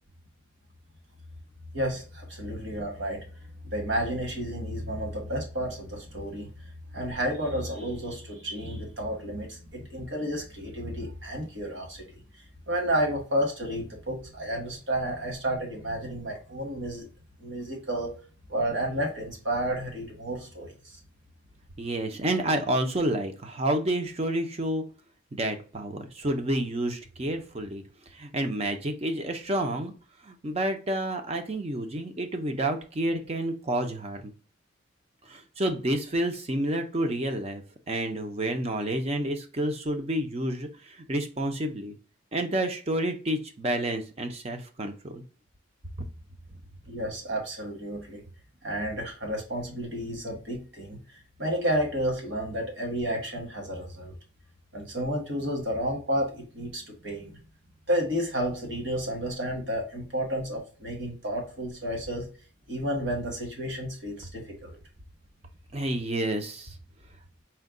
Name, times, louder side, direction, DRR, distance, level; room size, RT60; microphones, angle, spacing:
voice 1, 1.7-6.5 6.9-17.1 17.4-18.1 18.5-21.0 46.9-48.2 48.6-54.1 54.7-57.4 57.9-62.3 62.7-64.8, equal, 60° right, 1 dB, 1.4 m, -31 dB
voice 2, 21.8-24.8 25.4-29.9 30.2-34.3 35.2-41.9 42.3-45.2 65.7-66.8, right 1 dB, 30° right, 6 dB, 0.6 m, -29 dB
4.4 x 2.2 x 3.7 m, 0.38 s
head